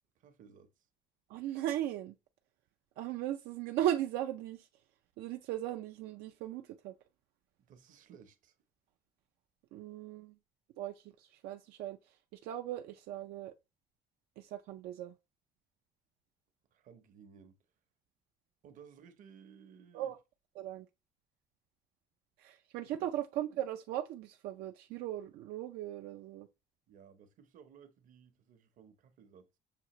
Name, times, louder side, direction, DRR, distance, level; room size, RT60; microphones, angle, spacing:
voice 1, 0.1-0.9 7.6-8.6 16.7-17.6 18.6-20.1 26.9-29.5, right 7 dB, 60° right, 0.8 m, -58 dB
voice 2, 1.3-2.2 3.0-4.7 5.2-6.9 9.7-10.3 10.8-13.5 14.4-15.1 19.9-20.2 20.6-20.9 22.4-26.5, right 12 dB, 85° right, 0.4 m, -38 dB
6.7 x 2.5 x 3.0 m
cardioid pair, 140°, 16 cm